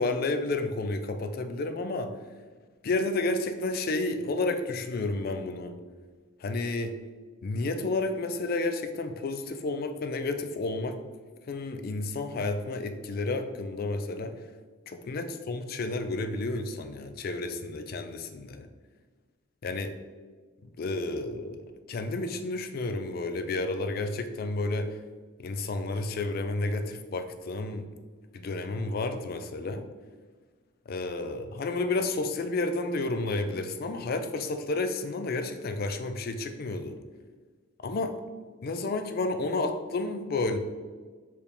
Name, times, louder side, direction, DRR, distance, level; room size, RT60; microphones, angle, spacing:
voice 1, 0.0-2.1 2.8-5.7 6.4-7.0 7.4-11.0 11.5-14.3 14.9-18.7 19.6-20.0 20.6-25.0 25.4-27.9 28.3-29.8 30.9-37.0 37.8-38.2 38.6-40.6, left 2 dB, 45° left, 8 dB, 0.4 m, -31 dB
4.6 x 3.4 x 3.4 m, 1.4 s
head